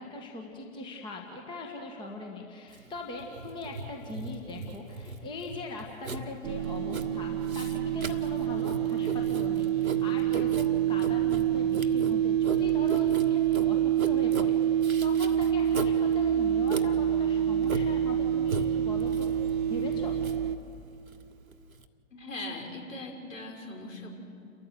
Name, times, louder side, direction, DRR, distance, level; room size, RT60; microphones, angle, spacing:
voice 1, 0.0-19.4 19.6-20.1, left 2 dB, 10° left, 1 dB, 1.6 m, -40 dB
Writing, 2.7-21.9, right 3 dB, 80° right, 1.5 m, -39 dB
sound 1, 6.4-20.6, right 10 dB, 20° right, 0.7 m, -27 dB
voice 2, 22.1-24.1, left 2 dB, 65° left, 0 dB, 5.6 m, -40 dB
29.5 x 14.0 x 7.6 m, 2.6 s
figure-of-eight pair, 125°, 41 cm